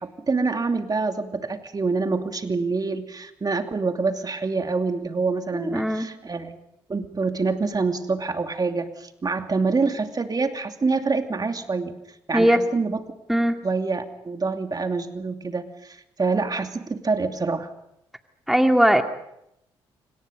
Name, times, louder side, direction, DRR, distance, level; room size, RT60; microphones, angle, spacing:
voice 1, 0.0-6.6 6.9-11.9 12.3-13.0 13.6-17.7, right 4 dB, 35° right, 6 dB, 2.7 m, -26 dB
voice 2, 5.5-6.1 12.3-12.6 13.3-13.6 18.5-19.0, equal, ahead, 5 dB, 2.2 m, -19 dB
27.0 x 26.0 x 5.3 m, 0.80 s
hypercardioid pair, 50°, 11 cm